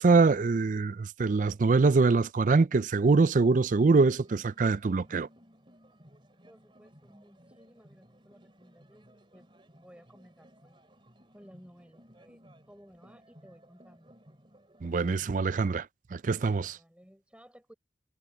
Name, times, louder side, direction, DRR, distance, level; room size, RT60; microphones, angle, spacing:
voice 1, 0.0-5.3 14.8-15.9 16.1-16.8, right 4 dB, 45° right, 0.4 m, -24 dB
sound 1, 3.9-15.3, equal, 30° right, 3.1 m, -59 dB
voice 2, 6.5-9.1 9.3-9.5 9.8-10.8 11.3-14.2 16.6-17.7, equal, 5° right, 5.4 m, -57 dB
head